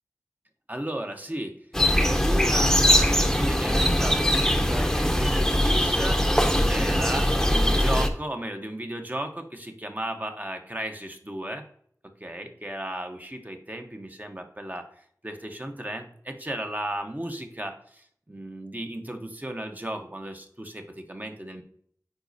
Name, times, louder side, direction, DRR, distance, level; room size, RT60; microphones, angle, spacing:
voice 1, 0.7-1.6 1.9-11.6 12.2-14.9 15.2-21.6, right 1 dB, 25° right, 5 dB, 0.9 m, -35 dB
sound 1, 1.7-8.1, equal, 5° left, 0.8 m, -21 dB
9.8 x 4.2 x 2.7 m, 0.62 s
wide cardioid pair, 45°, 6 cm